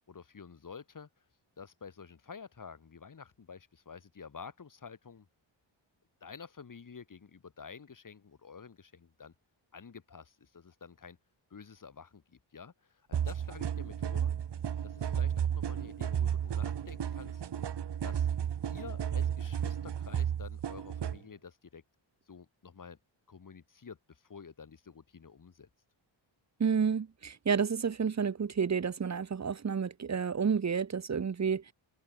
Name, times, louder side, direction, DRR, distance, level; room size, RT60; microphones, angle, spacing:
voice 1, 0.1-1.1 1.6-5.3 6.2-9.3 9.7-11.2 11.5-14.3 14.8-17.4 18.0-18.3 18.7-21.8 22.3-23.0 23.3-25.7, left 6 dB, 40° left, 6.1 m, -50 dB
sound 1, 13.1-21.2, right 9 dB, 60° right, 1.9 m, -33 dB
voice 2, 26.6-31.7, right 6 dB, 35° right, 1.6 m, -30 dB
wide cardioid pair, 145°, 46 cm